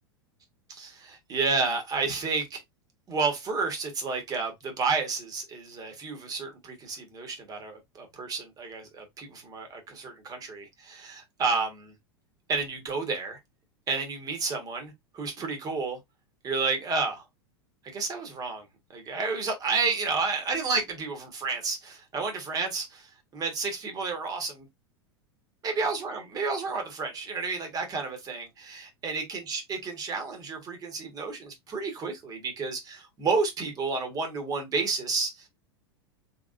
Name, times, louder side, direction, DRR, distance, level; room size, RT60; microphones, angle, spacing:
voice 1, 0.7-2.6 3.1-11.9 12.5-13.4 13.9-16.0 16.4-17.2 17.8-18.7 18.9-24.7 25.6-35.5, right 4 dB, 25° right, 1.5 m, -31 dB
3.9 x 3.4 x 2.5 m
figure-of-eight pair, 85°, 14 cm